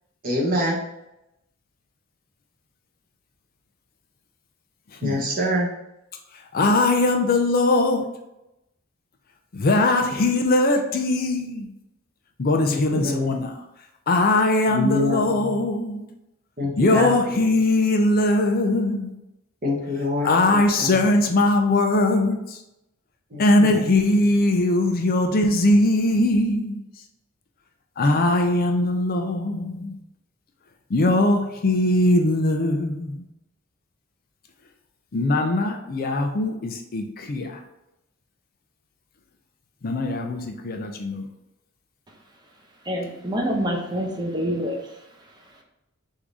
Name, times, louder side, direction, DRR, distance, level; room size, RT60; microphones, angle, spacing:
voice 1, 0.2-0.8 5.0-5.7 12.6-13.4 14.7-15.2 16.6-17.1 19.6-20.9 23.3-23.8, left 1 dB, 45° right, -3 dB, 1.2 m, -25 dB
voice 2, 4.9-5.2 6.3-8.0 9.5-11.7 12.4-13.6 14.1-16.0 16.8-19.1 20.2-22.6 23.4-26.8 28.0-30.0 30.9-33.3 35.1-37.6 39.8-41.3, left 2 dB, 45° left, 4 dB, 0.5 m, -21 dB
voice 3, 42.8-45.0, equal, 20° right, 0 dB, 0.8 m, -26 dB
3.6 x 2.7 x 4.7 m, 0.89 s
head